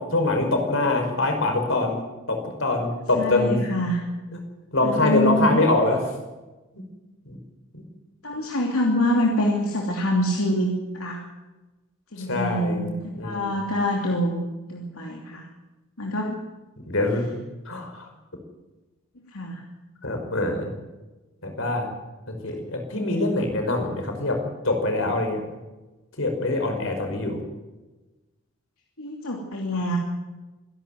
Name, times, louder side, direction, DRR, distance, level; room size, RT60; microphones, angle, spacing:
voice 1, 0.1-2.0 2.3-3.6 4.7-6.0 7.3-7.4 7.7-7.8 12.2-12.8 13.1-13.5 16.8-17.3 17.7-18.1 20.0-20.7 21.4-21.9 22.3-25.4 26.2-27.4, left 2 dB, 65° left, 4 dB, 5.5 m, -24 dB
voice 2, 3.1-4.0 4.8-5.6 8.2-11.2 12.1-15.5 16.0-16.4 19.3-19.6 29.0-30.0, equal, 80° left, 0 dB, 2.9 m, -25 dB
26.5 x 12.0 x 9.4 m, 1.1 s
head